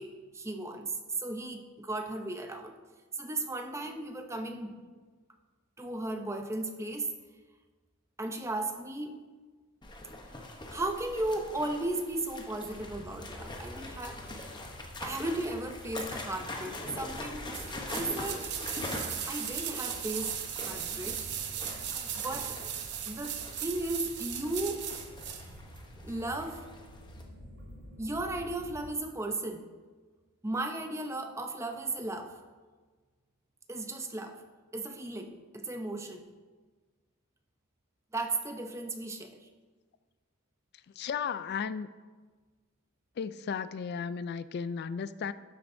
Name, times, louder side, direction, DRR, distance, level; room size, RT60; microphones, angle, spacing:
voice 1, 0.0-2.7 3.2-4.8 5.8-7.1 8.2-9.1 10.7-14.5 15.0-18.5 19.3-21.2 22.1-22.6 23.1-24.9 26.0-26.7 28.0-29.7 30.4-32.3 33.7-34.4 34.7-36.2 38.1-39.4, right 2 dB, 15° right, 0.6 m, -35 dB
sound 1, 9.8-27.2, left 2 dB, 20° left, 0.9 m, -43 dB
sound 2, 12.7-28.9, equal, 85° right, 2.7 m, -50 dB
sound 3, 17.5-25.5 25.8-25.9, right 9 dB, 50° right, 0.8 m, -37 dB
voice 2, 40.9-41.9 43.2-45.3, left 6 dB, 50° left, 0.3 m, -35 dB
12.0 x 7.6 x 2.7 m
head